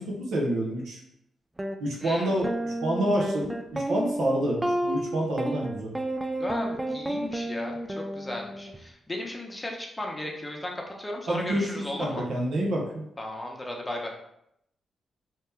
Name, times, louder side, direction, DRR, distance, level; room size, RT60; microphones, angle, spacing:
voice 1, 0.1-1.0 1.8-5.9 11.3-13.0, right 1 dB, 75° right, -2 dB, 0.8 m, -28 dB
sound 1, 1.6-1.8 2.4-8.8, right 1 dB, 20° right, 0.3 m, -31 dB
voice 2, 2.0-2.4 6.3-12.2 13.2-14.1, left 1 dB, 20° left, 0 dB, 0.8 m, -35 dB
2.9 x 2.1 x 3.3 m, 0.77 s
supercardioid pair, 45°, 0 cm